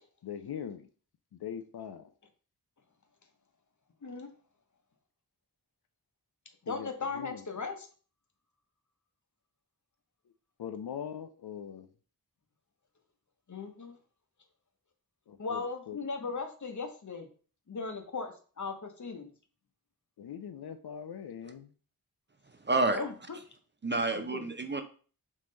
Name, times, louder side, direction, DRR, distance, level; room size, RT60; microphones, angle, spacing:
voice 1, 0.2-0.9 1.3-2.1 6.7-7.5 10.6-11.9 15.3-16.0 20.2-21.7, left 8 dB, 85° left, 8 dB, 0.5 m, -41 dB
voice 2, 6.6-7.9 13.5-14.0 15.4-17.3 17.7-19.3 22.9-23.4 24.1-24.4, left 4 dB, 50° left, 5 dB, 0.9 m, -37 dB
voice 3, 22.7-23.0 23.8-24.8, right 2 dB, 30° right, 8 dB, 0.5 m, -28 dB
3.7 x 3.1 x 3.8 m, 0.40 s
wide cardioid pair, 65°, 37 cm